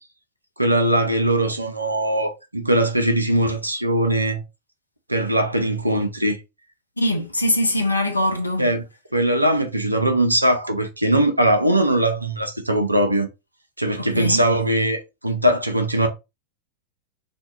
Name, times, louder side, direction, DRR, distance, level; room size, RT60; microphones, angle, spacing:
voice 1, 0.6-4.4 5.1-6.4 8.6-8.8 9.1-13.3 13.8-16.1, right 1 dB, 85° right, 0.5 m, -20 dB
voice 2, 7.0-8.7 14.1-14.4, left 1 dB, 85° left, 0.5 m, -22 dB
2.6 x 2.2 x 2.5 m
figure-of-eight pair, 90°, 0 cm